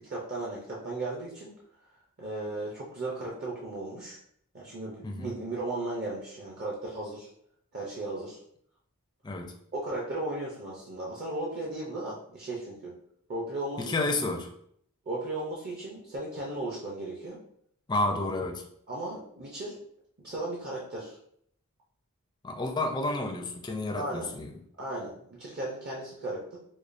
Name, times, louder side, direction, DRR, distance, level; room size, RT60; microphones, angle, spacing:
voice 1, 0.1-1.5 2.2-4.2 4.5-7.3 7.7-8.4 9.7-12.9 13.3-13.9 15.1-17.4 18.1-18.2 18.9-19.8 20.2-21.2 23.9-24.3 24.8-26.6, right 2 dB, 45° right, -4 dB, 0.6 m, -36 dB
voice 2, 13.8-14.5 17.9-18.6 22.4-24.6, left 2 dB, 20° left, 3 dB, 0.4 m, -30 dB
4.8 x 2.3 x 2.5 m, 0.68 s
head